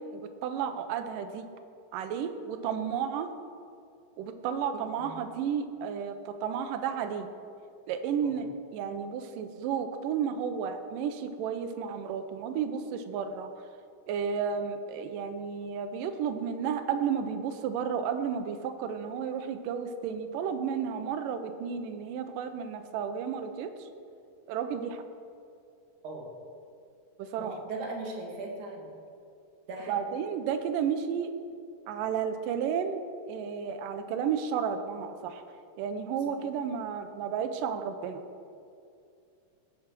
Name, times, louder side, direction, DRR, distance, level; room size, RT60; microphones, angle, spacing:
voice 1, 0.0-1.5 1.9-3.3 4.2-7.3 7.9-8.5 8.7-13.5 14.1-23.7 24.5-25.0 27.2-27.5 29.9-31.3 31.9-33.0 33.3-35.4 35.8-38.2, right 7 dB, 80° right, 7 dB, 2.1 m, -32 dB
voice 2, 4.7-5.3 8.2-8.4 26.0-26.3 27.4-28.9 29.7-30.1 36.3-36.4, right 2 dB, 55° right, 0 dB, 2.9 m, -39 dB
17.5 x 6.3 x 6.2 m, 2.5 s
omnidirectional pair, 4.5 m